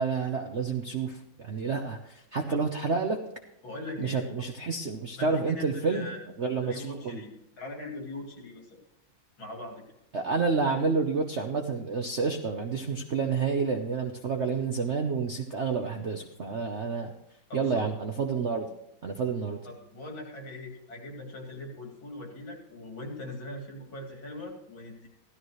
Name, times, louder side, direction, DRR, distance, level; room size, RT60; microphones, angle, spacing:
voice 1, 0.0-3.2 4.0-6.1 6.4-7.2 10.1-17.1 17.5-18.7 19.0-19.6, right 4 dB, 55° right, 4 dB, 0.7 m, -29 dB
voice 2, 3.6-4.5 5.1-6.3 6.6-8.8 9.4-9.8 17.5-17.9 19.6-25.1, left 1 dB, 70° left, 1 dB, 3.4 m, -41 dB
16.0 x 13.0 x 3.2 m, 0.81 s
omnidirectional pair, 2.3 m